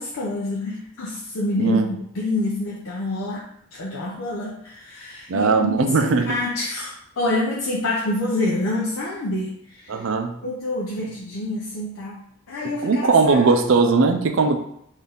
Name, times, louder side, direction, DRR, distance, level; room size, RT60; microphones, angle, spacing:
voice 1, 0.0-3.5 3.8-10.0 10.4-12.2 12.5-13.5, left 2 dB, 90° left, -4 dB, 0.6 m, -27 dB
voice 2, 1.6-1.9 5.3-6.4 9.9-10.4 12.6-14.6, right 4 dB, 70° right, 7 dB, 0.5 m, -19 dB
3.9 x 2.7 x 3.5 m, 0.74 s
head